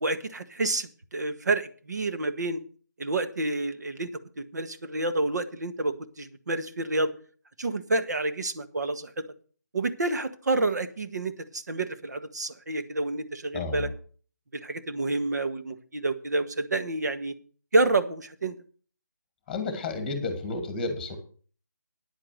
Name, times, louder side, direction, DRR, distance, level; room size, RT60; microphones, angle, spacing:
voice 1, 0.0-2.6 3.0-4.1 4.4-7.1 7.6-9.2 9.7-13.9 14.5-17.4 17.7-18.6, right 2 dB, 65° right, 9 dB, 1.6 m, -29 dB
voice 2, 13.5-13.9 19.5-21.2, left 3 dB, 5° left, 8 dB, 1.8 m, -31 dB
9.8 x 8.6 x 6.6 m, 0.43 s
figure-of-eight pair, 170°, 10 cm